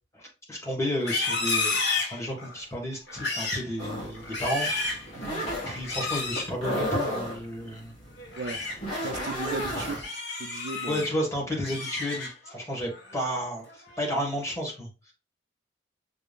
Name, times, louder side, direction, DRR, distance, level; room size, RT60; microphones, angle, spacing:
voice 1, 0.1-5.2 5.6-7.9 9.7-10.0 10.8-15.1, equal, 15° left, 1.6 m, -32 dB
Livestock farm animals working animals, 0.9-2.6 3.1-3.7 4.1-5.1 5.8-6.5 8.2-8.8 9.2-9.5 9.9-11.1 11.5-12.5 12.9-13.3 13.7-14.1, left 3 dB, 60° left, 1.3 m, -31 dB
sound 1, 3.8-10.0, equal, 35° left, 2.8 m, -33 dB
voice 2, 9.0-9.9 10.4-11.0, right 4 dB, 65° right, 0.4 m, -36 dB
6.0 x 3.5 x 2.4 m
head